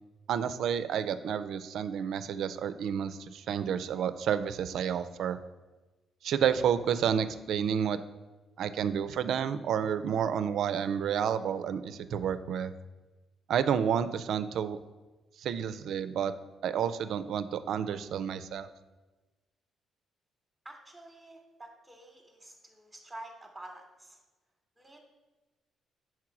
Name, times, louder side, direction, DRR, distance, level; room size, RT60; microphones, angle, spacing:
voice 1, 0.3-5.4 6.2-8.0 8.6-12.7 13.5-14.8 15.4-16.3 16.6-18.7, right 8 dB, 75° right, 12 dB, 0.3 m, -30 dB
voice 2, 20.6-24.2 24.8-25.0, right 1 dB, 15° right, 0 dB, 0.9 m, -49 dB
4.8 x 4.5 x 5.8 m, 1.2 s
supercardioid pair, 70°, 0 cm